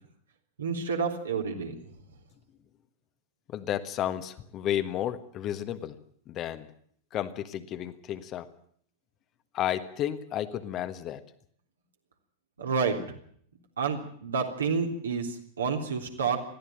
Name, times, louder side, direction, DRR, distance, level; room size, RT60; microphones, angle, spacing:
voice 1, 0.6-1.7 12.6-13.0 13.8-16.4, right 5 dB, 70° right, 2 dB, 3.5 m, -29 dB
voice 2, 3.5-6.0 6.3-6.7 7.1-8.5 9.5-11.2, left 11 dB, 35° left, 10 dB, 1.4 m, -32 dB
21.0 x 14.5 x 8.9 m, 0.63 s
figure-of-eight pair, 90°, 0 cm